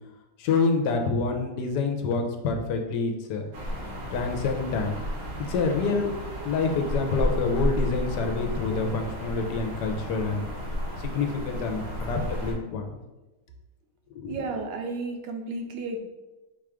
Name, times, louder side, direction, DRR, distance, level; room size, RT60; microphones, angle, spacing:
voice 1, 0.4-3.5 4.1-5.0 5.5-6.1 6.4-10.5 11.0-12.9 14.1-14.4, left 4 dB, 75° left, 3 dB, 1.2 m, -27 dB
sound 1, 3.5-12.5, equal, 55° right, 1.4 m, -32 dB
voice 2, 14.2-16.0, right 3 dB, 90° right, 3 dB, 1.3 m, -33 dB
4.4 x 2.4 x 4.8 m, 1.1 s
omnidirectional pair, 1.9 m